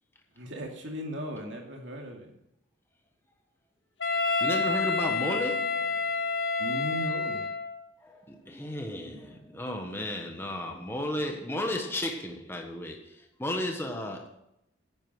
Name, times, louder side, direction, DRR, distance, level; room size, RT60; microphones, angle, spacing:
voice 1, 0.4-2.3 6.6-7.4, equal, 60° right, 1 dB, 2.6 m, -37 dB
Wind instrument woodwind instrument, 4.0-7.8, left 4 dB, 65° left, 1.4 m, -28 dB
voice 2, 4.4-6.0 8.0-14.3, left 1 dB, 10° left, 2 dB, 1.3 m, -34 dB
10.5 x 8.8 x 6.3 m, 0.81 s
head